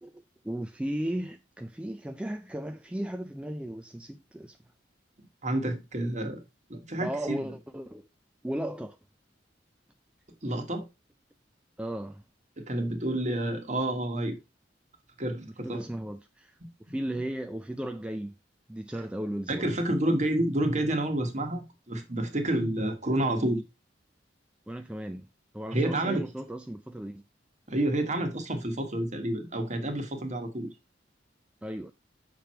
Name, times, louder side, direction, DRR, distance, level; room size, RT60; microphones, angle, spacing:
voice 1, 0.0-4.6 7.0-8.1 8.4-9.0 11.8-12.2 15.6-18.4 18.7-19.7 24.7-25.3 25.5-27.3 31.6-31.9, right 1 dB, 5° right, 0.3 m, -36 dB
voice 2, 5.4-6.4 6.7-7.4 10.4-10.9 12.6-14.4 15.2-15.9 16.6-16.7 19.5-23.7 25.7-26.2 27.7-30.7, right 1 dB, 40° right, 1.3 m, -29 dB
6.8 x 4.6 x 4.3 m
head